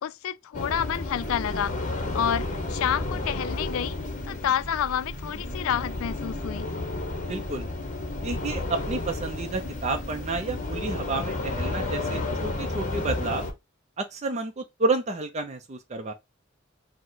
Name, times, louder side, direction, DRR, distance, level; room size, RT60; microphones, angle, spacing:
voice 1, 0.0-1.7 2.1-4.0 4.2-6.7, left 9 dB, 80° left, 0.3 m, -29 dB
sound 1, 0.5-13.5, left 2 dB, 40° left, 0.9 m, -32 dB
voice 2, 7.3-7.7 8.2-13.5 14.0-16.1, right 3 dB, 35° right, 0.5 m, -30 dB
4.8 x 2.1 x 3.9 m
head